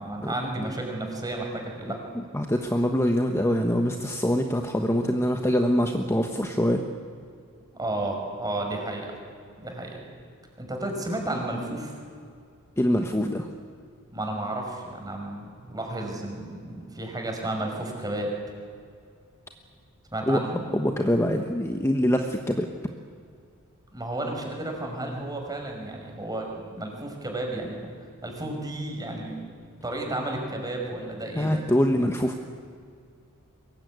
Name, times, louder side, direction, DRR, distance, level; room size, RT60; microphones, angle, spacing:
voice 1, 0.0-2.0 7.8-9.1 9.6-10.0 10.6-11.9 14.1-18.3 20.1-20.6 23.9-27.9 28.2-29.4 29.8-31.6, right 1 dB, 20° right, 1 dB, 5.5 m, -32 dB
voice 2, 2.1-6.8 12.8-13.5 20.3-20.4 20.7-22.7 31.4-32.4, equal, 10° left, 4 dB, 1.2 m, -24 dB
23.5 x 21.0 x 9.5 m, 2.3 s
head